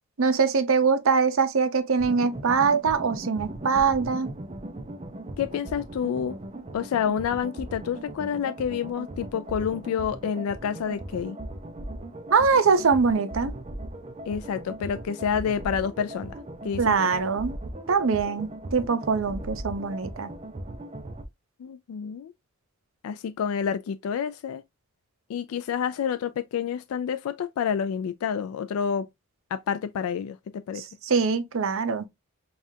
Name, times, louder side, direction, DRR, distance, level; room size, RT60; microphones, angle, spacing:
voice 1, 0.2-4.3 12.3-13.5 16.8-17.5 17.9-20.3 30.8-32.1, right 5 dB, 70° right, 0.6 m, -23 dB
sound 1, 2.0-21.2, right 1 dB, 30° right, 0.5 m, -38 dB
voice 2, 5.4-6.4 6.7-11.4 14.3-16.4 16.6-16.9 21.6-22.3 23.0-24.6 25.3-29.1 29.5-30.8, left 7 dB, 85° left, 0.3 m, -28 dB
5.4 x 2.4 x 2.6 m
head